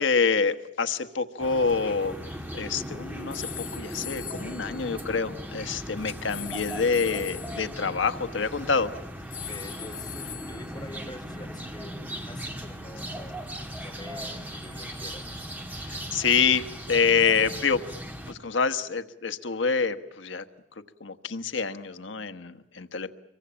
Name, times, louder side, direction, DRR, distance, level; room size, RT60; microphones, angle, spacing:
voice 1, 0.0-2.2 2.5-8.9 15.8-17.8 18.3-20.4 21.0-23.1, left 5 dB, 85° left, 10 dB, 1.3 m, -26 dB
sound 1, 1.4-18.3, equal, 10° right, 2.2 m, -38 dB
sound 2, 3.3-5.5 6.3-7.7 9.3-11.0, left 9 dB, 50° left, 4.3 m, -41 dB
voice 2, 9.5-13.5 13.8-15.2, left 1 dB, 20° left, 2 dB, 3.9 m, -45 dB
26.0 x 23.0 x 8.7 m, 0.79 s
head